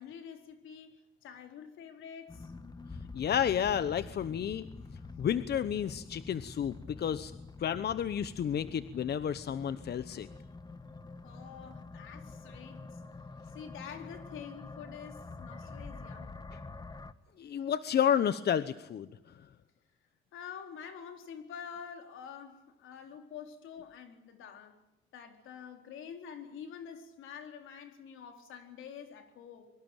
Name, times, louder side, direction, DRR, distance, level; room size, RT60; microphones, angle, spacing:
voice 1, 0.0-2.5 11.2-13.0 13.5-16.3 20.3-24.8 25.1-29.7, left 7 dB, 85° left, 4.1 m, -47 dB
sound 1, 2.3-17.1, left 3 dB, 20° left, 1.4 m, -47 dB
voice 2, 3.1-4.7 5.2-7.3 7.6-10.3 16.5-16.6 17.4-19.5, left 9 dB, 55° left, 1.0 m, -31 dB
24.0 x 24.0 x 9.1 m
cardioid pair, 90°, 20 cm